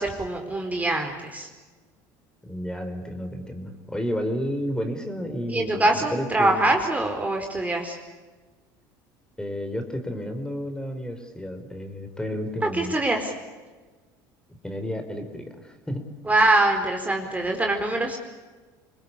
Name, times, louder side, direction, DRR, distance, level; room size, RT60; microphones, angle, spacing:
voice 1, 0.0-1.5 5.5-8.0 12.7-13.3 16.3-18.2, right 2 dB, 15° right, 3 dB, 4.4 m, -23 dB
voice 2, 2.4-6.7 9.4-13.0 14.6-16.1, equal, 5° left, 6 dB, 4.8 m, -31 dB
27.0 x 21.0 x 8.6 m, 1.3 s
hypercardioid pair, 80°, 10 cm